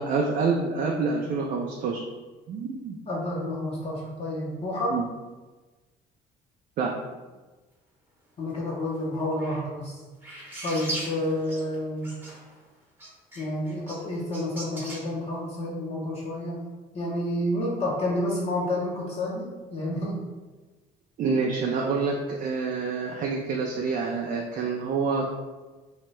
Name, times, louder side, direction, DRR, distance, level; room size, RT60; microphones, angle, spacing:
voice 1, 0.0-2.0 2.5-3.0 4.9-5.0 6.8-6.9 21.2-25.3, right 4 dB, 50° right, 0 dB, 0.4 m, -27 dB
voice 2, 3.1-5.0 8.4-10.0 10.6-12.2 13.4-16.6 16.9-20.2, left 1 dB, 40° left, -4 dB, 0.6 m, -29 dB
sound 1, 9.2-9.6 10.2-11.8 12.0-12.6 13.0-15.0, right 1 dB, 10° right, 0.8 m, -38 dB
2.7 x 2.2 x 3.0 m, 1.2 s
cardioid pair, 110°, 17 cm